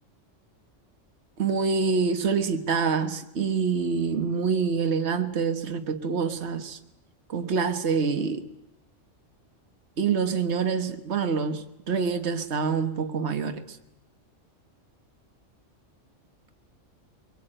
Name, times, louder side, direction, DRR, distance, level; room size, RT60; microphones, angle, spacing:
voice 1, 1.4-6.8 7.3-8.4 10.0-13.8, right 5 dB, 60° right, 1.7 m, -26 dB
24.0 x 23.5 x 9.0 m
omnidirectional pair, 1.3 m